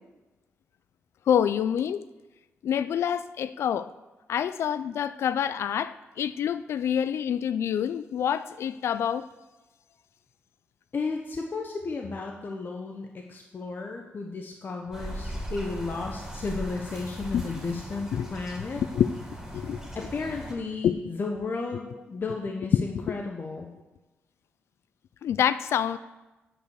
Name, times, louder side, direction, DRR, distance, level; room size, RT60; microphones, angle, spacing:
voice 1, 1.3-2.1 2.6-3.9 4.3-9.3 17.3-17.4 18.1-18.3 18.8-19.2 19.5-20.1 20.8-21.0 22.7-22.8 25.2-26.0, left 9 dB, 75° left, 15 dB, 0.3 m, -27 dB
voice 2, 10.9-18.8 19.9-23.7, left 3 dB, 45° left, 2 dB, 1.0 m, -34 dB
sound 1, 14.9-20.5, equal, 10° right, 3.2 m, -39 dB
9.1 x 5.4 x 8.0 m, 1.1 s
cardioid pair, 70°, 5 cm